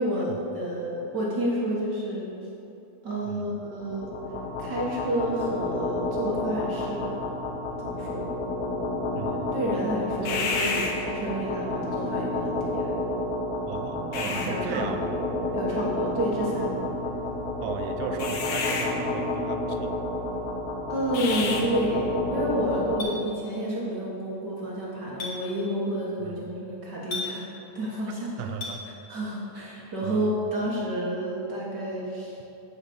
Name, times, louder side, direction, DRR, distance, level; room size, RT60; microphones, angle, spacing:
voice 1, 0.0-2.3 3.0-4.1 4.6-7.2 7.8-8.3 9.5-12.9 14.2-15.1 15.5-16.9 20.9-27.5 27.7-28.3 29.1-32.4, right 1 dB, 60° right, -5 dB, 1.1 m, -30 dB
sound 1, 3.8-23.0, left 2 dB, 70° left, 1.5 m, -29 dB
voice 2, 9.1-9.5 10.3-10.4 13.7-15.2 17.6-20.0 26.2-26.4 28.4-28.8 30.0-30.4, right 8 dB, 80° right, 6 dB, 2.0 m, -36 dB
Chink clink, 23.0-23.1 25.2-25.3 27.1-27.3 28.6-28.8, left 4 dB, 40° left, 2.2 m, -32 dB
9.3 x 6.4 x 7.0 m, 2.9 s
omnidirectional pair, 4.0 m